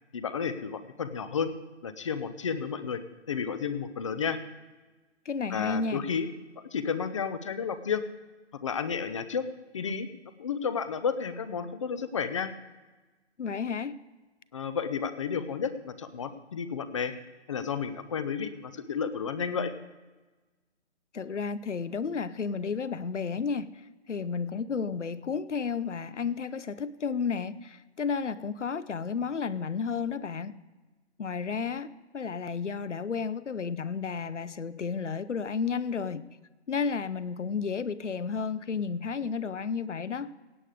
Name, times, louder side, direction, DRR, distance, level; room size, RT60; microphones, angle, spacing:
voice 1, 0.1-1.5 1.8-3.0 3.3-4.4 5.5-6.3 6.7-8.0 8.6-9.5 9.7-10.1 10.4-12.5 14.5-17.1 17.5-19.7, left 6 dB, 25° left, 0.6 m, -32 dB
voice 2, 5.2-6.1 13.4-14.0 21.1-30.6 31.2-36.3 36.7-40.3, left 5 dB, 85° left, 0.8 m, -32 dB
17.0 x 8.3 x 4.9 m
figure-of-eight pair, 145°, 35 cm